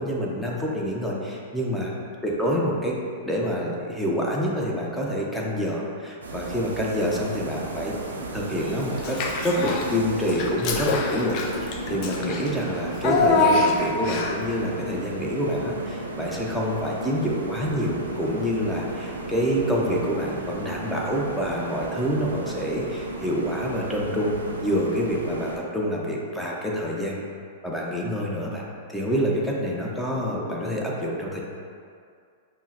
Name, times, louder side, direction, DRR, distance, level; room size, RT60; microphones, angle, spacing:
voice 1, 0.0-1.9 2.2-3.0 3.2-9.2 9.4-11.4 11.6-27.2 27.6-31.4, equal, 5° left, -3 dB, 0.6 m, -27 dB
sound 1, 6.2-25.6, right 3 dB, 85° right, 0.4 m, -35 dB
Child speech kid speaking / Bathtub (filling or washing), 9.0-9.9 10.3-14.5, left 3 dB, 45° left, 0.4 m, -25 dB
5.4 x 2.1 x 2.5 m, 2.3 s
hypercardioid pair, 110°, 0 cm